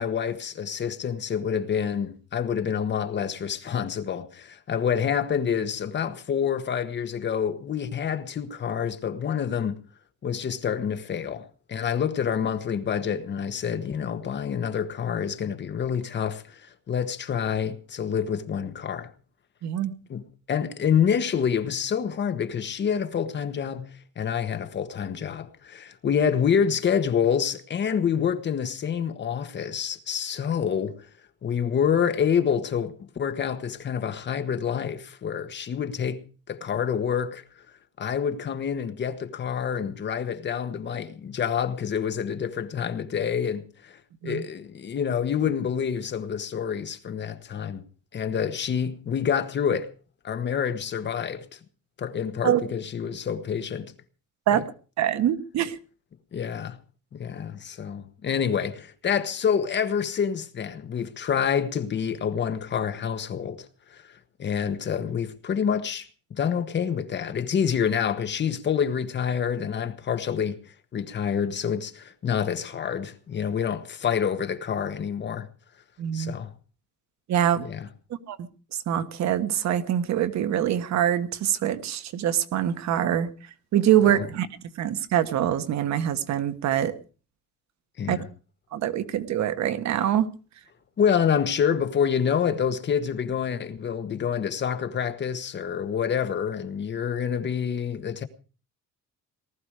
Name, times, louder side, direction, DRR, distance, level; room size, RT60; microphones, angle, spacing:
voice 1, 0.0-9.8 10.2-16.6 16.9-19.1 20.1-30.9 31.4-37.4 38.0-47.8 48.1-49.9 50.2-51.6 52.0-53.9 54.5-54.6 56.3-56.8 57.1-64.0 64.4-70.6 70.9-75.5 76.1-76.5 77.6-77.9 84.0-84.2 88.0-88.3 91.0-98.2, left 7 dB, 35° left, 1.3 m, -27 dB
voice 2, 19.6-19.9 44.2-44.4 52.4-52.6 54.5-54.6 55.0-55.8 76.0-76.3 77.3-77.7 78.3-78.4 78.9-83.3 83.7-84.5 84.8-86.9 88.1-88.2 88.7-90.3, right 10 dB, 60° right, 1.4 m, -24 dB
19.0 x 13.5 x 4.9 m
cardioid pair, 175°, 30 cm